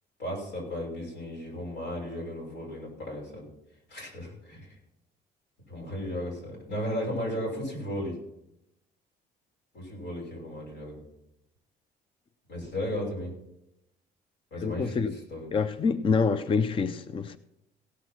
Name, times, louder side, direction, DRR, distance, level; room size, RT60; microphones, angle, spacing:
voice 1, 0.2-3.5 3.9-4.8 5.7-8.2 9.7-11.0 12.5-13.3 14.5-15.6, equal, 85° left, 6.0 m, -35 dB
voice 2, 14.6-15.2 15.5-17.4, left 5 dB, 30° left, 0.5 m, -26 dB
16.5 x 6.3 x 6.0 m
cardioid pair, 110°, 17 cm